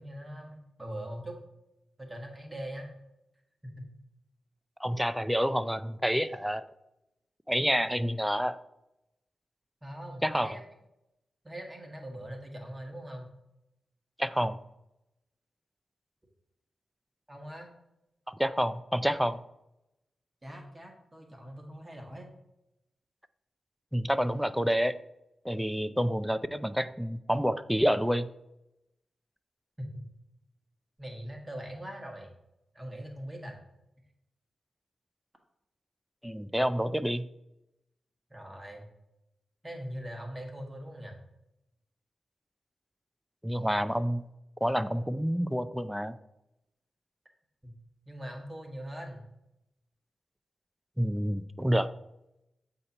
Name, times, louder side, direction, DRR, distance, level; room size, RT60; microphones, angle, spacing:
voice 1, 0.0-1.4 2.0-2.9 3.6-3.9 9.8-10.6 11.4-13.3 17.3-17.7 20.4-22.3 29.8-30.0 31.0-32.3 32.7-33.6 38.3-38.8 39.6-41.2 47.6-47.7 48.1-49.2, equal, 20° right, 1 dB, 1.5 m, -41 dB
voice 2, 4.8-6.6 7.5-8.6 10.2-10.5 14.2-14.6 18.3-19.4 23.9-25.0 25.4-28.3 36.2-37.3 43.4-44.2 44.6-46.2 51.0-51.9, equal, 5° right, 12 dB, 0.4 m, -28 dB
7.7 x 2.9 x 5.3 m, 0.87 s
cardioid pair, 60°, 0 cm